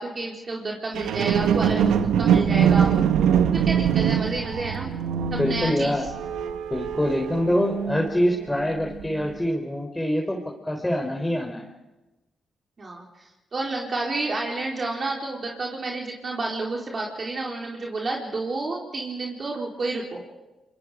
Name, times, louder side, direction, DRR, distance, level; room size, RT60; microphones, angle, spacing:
voice 1, 0.0-2.9 3.5-4.9 5.3-6.0 12.8-13.0 13.5-20.2, right 2 dB, 50° right, -2 dB, 4.2 m, -30 dB
sound 1, 0.9-8.4 9.0-9.1, right 8 dB, 80° right, 1.3 m, -23 dB
voice 2, 5.4-6.1 6.7-11.7, equal, 10° left, 1 dB, 3.9 m, -25 dB
25.0 x 23.5 x 5.1 m, 1.1 s
supercardioid pair, 45°, 0 cm